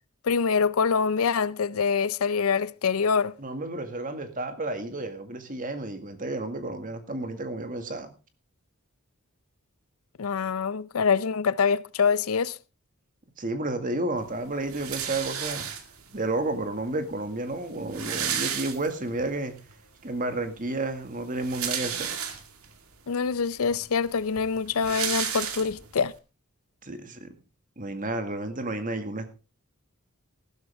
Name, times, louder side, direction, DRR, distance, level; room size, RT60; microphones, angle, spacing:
voice 1, 0.2-3.3 10.2-12.6 23.1-26.1, left 5 dB, 70° left, 0.5 m, -25 dB
voice 2, 3.4-8.1 13.4-15.6 16.1-19.5 20.0-22.2 26.8-27.3 27.8-29.3, right 2 dB, 40° right, 2.0 m, -31 dB
sound 1, 14.7-16.1 17.0-17.1 17.3-17.4 17.7-19.2 19.7-19.8 21.2-22.7 23.3-23.4 23.7-26.1, right 8 dB, 75° right, 2.1 m, -32 dB
15.0 x 12.5 x 3.5 m
head